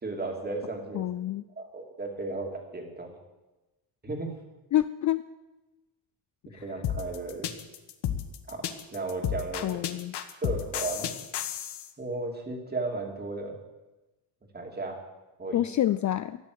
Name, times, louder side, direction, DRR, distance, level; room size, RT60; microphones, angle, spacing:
voice 1, 0.0-1.1 1.6-3.1 4.0-4.3 6.5-7.5 8.5-8.6 8.9-9.7 10.4-11.1 12.0-13.6 14.5-15.0 15.4-15.7, right 3 dB, 25° right, 2 dB, 2.7 m, -34 dB
voice 2, 0.9-1.4 4.7-5.2 6.5-6.6 9.6-10.1 15.5-16.4, left 12 dB, 45° left, 14 dB, 0.4 m, -27 dB
sound 1, 6.8-11.9, left 10 dB, 70° left, 1.3 m, -32 dB
13.5 x 11.5 x 8.0 m, 1.1 s
cardioid pair, 150°, 42 cm